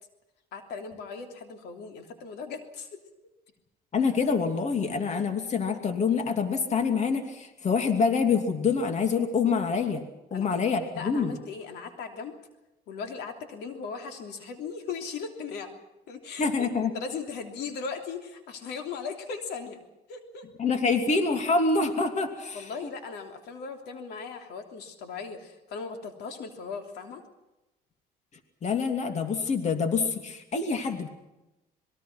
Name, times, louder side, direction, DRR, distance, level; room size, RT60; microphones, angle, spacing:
voice 1, 0.5-3.0 10.3-10.6 10.9-12.4 12.9-15.7 16.1-19.8 20.1-20.5 22.5-27.2, left 5 dB, 80° left, 5 dB, 3.1 m, -38 dB
voice 2, 3.9-10.0 10.3-11.3 16.4-16.9 20.6-22.7 28.6-31.1, left 5 dB, 45° left, 6 dB, 2.8 m, -26 dB
25.5 x 21.5 x 6.0 m, 0.97 s
cardioid pair, 110°, 17 cm